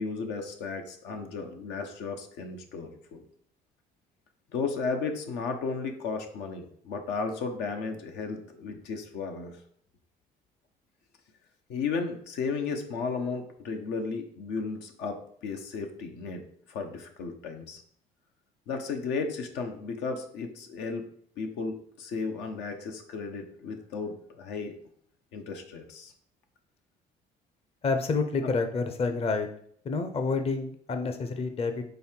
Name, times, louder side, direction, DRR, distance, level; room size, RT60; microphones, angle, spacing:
voice 1, 0.0-3.2 4.5-9.6 11.7-17.8 18.7-21.1 21.4-24.8 25.3-26.1, left 4 dB, 85° left, 4 dB, 1.0 m, -34 dB
voice 2, 27.8-29.5 29.8-31.8, left 4 dB, 35° left, 6 dB, 0.7 m, -28 dB
5.5 x 3.9 x 4.4 m, 0.63 s
cardioid pair, 110°, 17 cm